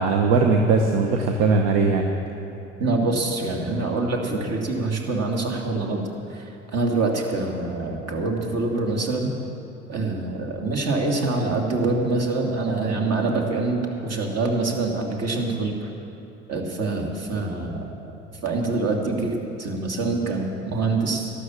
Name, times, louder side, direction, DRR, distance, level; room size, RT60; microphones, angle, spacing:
voice 1, 0.0-2.1, right 4 dB, 60° right, 3 dB, 1.2 m, -19 dB
voice 2, 2.8-6.4 6.7-9.3 9.9-15.9 16.5-17.9 18.4-21.3, right 3 dB, 45° right, 1 dB, 2.7 m, -25 dB
12.5 x 12.0 x 7.3 m, 2.9 s
hypercardioid pair, 65°, 36 cm